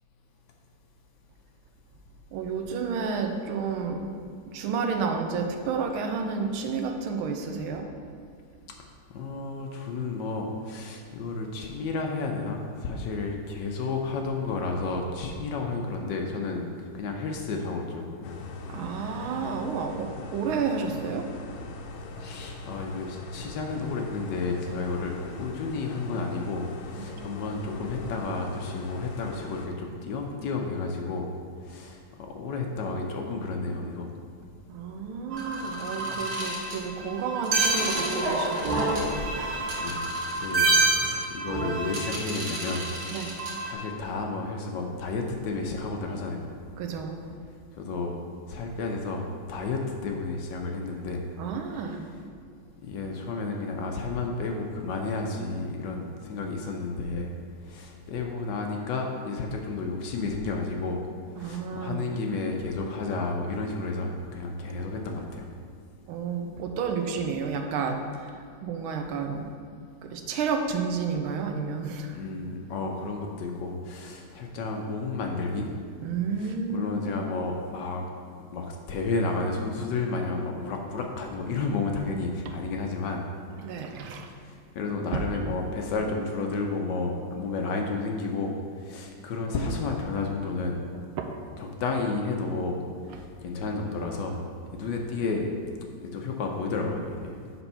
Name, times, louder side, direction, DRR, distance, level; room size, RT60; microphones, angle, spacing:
voice 1, 2.3-4.1 4.5-7.9 18.7-21.3 26.9-27.3 34.7-39.0 43.1-43.4 46.8-47.2 51.4-52.0 61.3-62.1 66.1-69.5 70.0-72.2 76.0-77.2 82.4-82.5 83.6-84.3 85.1-85.2 90.9-91.4 93.1-93.2, right 5 dB, 90° right, 5 dB, 1.5 m, -31 dB
voice 2, 9.1-16.6 16.9-18.4 22.2-31.3 31.6-32.0 32.3-34.1 39.8-42.9 43.7-46.5 47.7-48.2 48.5-51.2 52.8-57.3 57.6-61.0 61.4-65.5 72.1-75.7 76.4-78.1 78.5-83.2 84.4-90.8 91.6-92.8 93.1-94.4 94.7-95.5 96.1-97.4, left 3 dB, 70° left, 2 dB, 1.2 m, -31 dB
sound 1, 18.2-29.7, left 2 dB, 85° left, 1.6 m, -40 dB
sound 2, 35.3-43.7, right 2 dB, 65° right, 2.1 m, -28 dB
6.9 x 4.4 x 5.5 m, 2.2 s
omnidirectional pair, 2.3 m